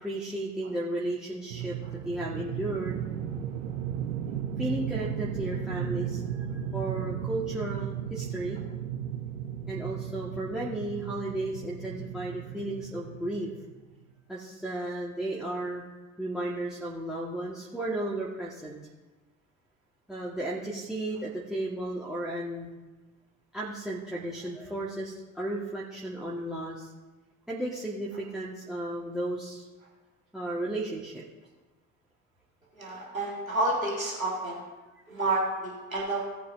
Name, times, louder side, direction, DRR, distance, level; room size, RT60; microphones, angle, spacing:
voice 1, 0.0-3.0 4.6-8.6 9.7-13.5 14.3-15.8 16.2-18.8 20.1-22.7 23.5-26.9 27.5-29.6 30.3-31.2, right 1 dB, ahead, -3 dB, 1.7 m, -34 dB
sound 1, 1.5-13.7, right 9 dB, 70° right, 0.9 m, -35 dB
voice 2, 32.8-34.7 35.1-36.2, right 2 dB, 90° right, -3 dB, 2.1 m, -30 dB
17.5 x 8.4 x 2.7 m, 1.2 s
figure-of-eight pair, 60°, 40 cm